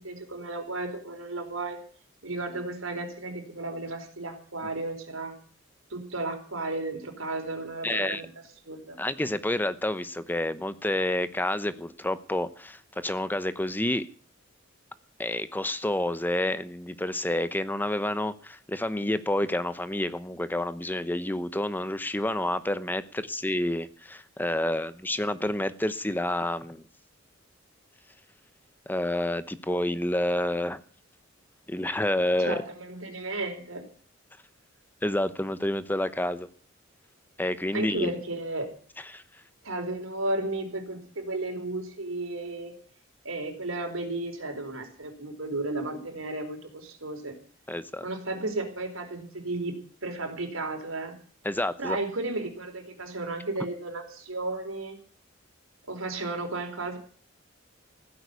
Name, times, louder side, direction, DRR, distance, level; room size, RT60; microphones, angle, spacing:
voice 1, 0.0-1.8 2.2-5.3 5.9-8.3 8.7-9.0 32.4-33.8 37.7-38.7 39.6-42.7 43.2-47.4 48.0-51.2 51.8-55.0 55.9-57.0, right 2 dB, 85° right, 3 dB, 4.4 m, -34 dB
voice 2, 7.8-8.2 9.0-14.1 15.2-26.8 28.9-30.8 31.7-32.6 35.0-36.5 37.4-38.1 39.1-39.2 47.7-48.0 51.4-52.0, left 1 dB, 10° left, 13 dB, 0.9 m, -29 dB
16.0 x 9.7 x 8.3 m, 0.43 s
head